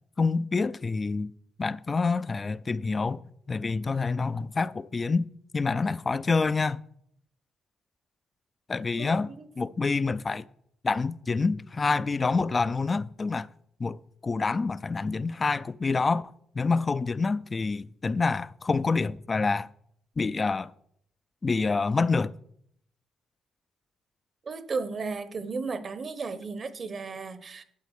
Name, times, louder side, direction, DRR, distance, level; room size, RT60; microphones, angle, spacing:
voice 1, 0.2-1.3 1.6-3.2 3.5-5.3 5.5-6.8 8.7-9.3 9.6-10.4 10.8-13.5 13.8-16.2 16.6-19.7 20.2-20.7 21.4-22.3, left 4 dB, 30° left, 0.4 m, -27 dB
voice 2, 9.0-9.5 24.4-27.6, right 4 dB, 45° right, 1.0 m, -34 dB
12.5 x 4.2 x 8.1 m
cardioid pair, 90°, 0 cm